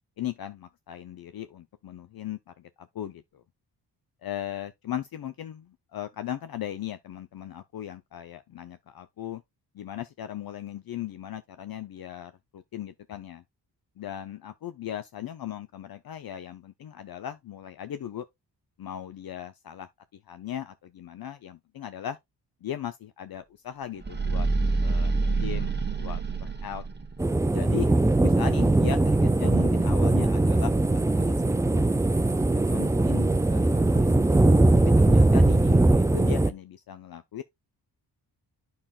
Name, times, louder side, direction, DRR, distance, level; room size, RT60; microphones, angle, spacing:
voice 1, 0.2-3.4 4.2-9.4 9.7-13.4 14.0-18.3 18.8-22.2 22.6-24.5 24.8-26.8 27.5-27.9 28.2-30.7 31.1-31.9 32.7-34.6 35.0-37.4, left 11 dB, 60° left, 0.6 m, -38 dB
sound 1, 24.0-27.3, right 3 dB, 25° right, 1.0 m, -27 dB
sound 2, 27.2-36.5, right 2 dB, 10° right, 0.4 m, -21 dB
8.8 x 5.7 x 2.4 m
cardioid pair, 80°, 42 cm